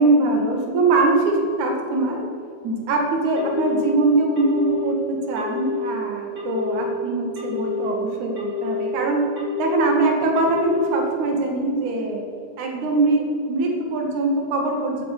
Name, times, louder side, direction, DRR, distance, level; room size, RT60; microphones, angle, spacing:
voice 1, 0.0-2.2 2.6-9.2 9.6-12.2 12.6-15.0, right 2 dB, 55° right, 1 dB, 3.0 m, -22 dB
Telephone, 3.4-3.9 4.4-4.9 5.4-5.9 6.4-6.9 7.4-7.9 8.4-8.9 9.4-9.9 10.4-10.9, left 7 dB, 35° right, 4.4 m, -28 dB
15.5 x 8.4 x 6.6 m, 2.8 s
omnidirectional pair, 4.5 m